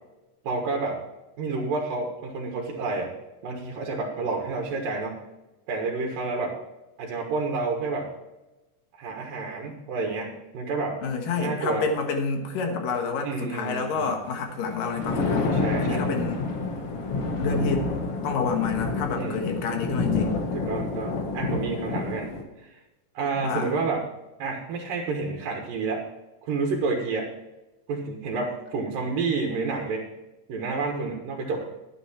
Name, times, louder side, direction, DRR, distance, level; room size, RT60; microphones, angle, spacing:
voice 1, 0.4-1.0 1.4-3.2 3.4-5.2 5.7-6.6 7.0-8.1 9.0-11.0 11.4-11.9 13.2-14.2 15.5-16.1 19.2-19.4 20.5-22.3 22.6-22.8 23.1-24.1 24.4-26.1 26.5-27.3 27.9-30.1 30.5-31.7, right 3 dB, 85° right, 0 dB, 3.2 m, -29 dB
voice 2, 11.0-16.5 17.4-17.9 18.2-20.4 23.4-23.7, left 5 dB, 80° left, 3 dB, 3.1 m, -28 dB
Thunder, 14.7-22.4, left 3 dB, 55° left, 2.0 m, -28 dB
12.0 x 9.4 x 4.4 m, 1.0 s
omnidirectional pair, 3.8 m